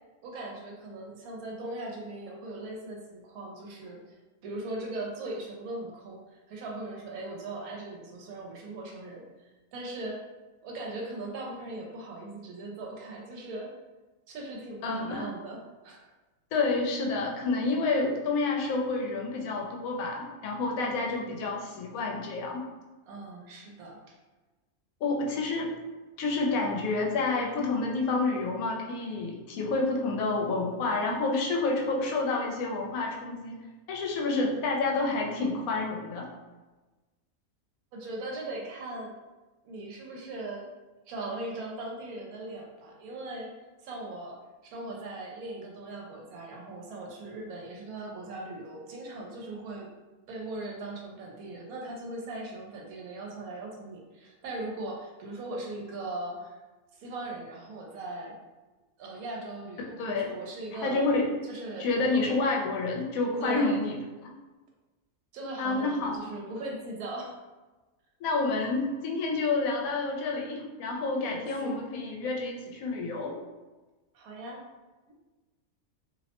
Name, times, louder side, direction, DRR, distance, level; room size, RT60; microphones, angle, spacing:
voice 1, 0.2-10.2 10.6-13.7 14.3-16.0 23.1-24.1 37.9-39.1 39.6-40.7 41.1-43.5 43.8-44.4 44.6-49.9 50.3-56.6 57.0-58.3 59.0-61.0 61.4-61.9 63.4-63.8 65.3-67.4 71.2-71.8 74.1-74.6, right 2 dB, 90° right, -1 dB, 1.1 m, -39 dB
voice 2, 14.8-15.3 16.5-22.6 25.0-25.7 26.2-33.6 33.9-36.3 60.0-60.3 60.8-61.3 61.8-64.0 64.2-64.3 65.6-66.3 68.2-73.4, left 3 dB, 75° left, 0 dB, 1.0 m, -29 dB
2.6 x 2.0 x 2.8 m, 1.2 s
omnidirectional pair, 1.5 m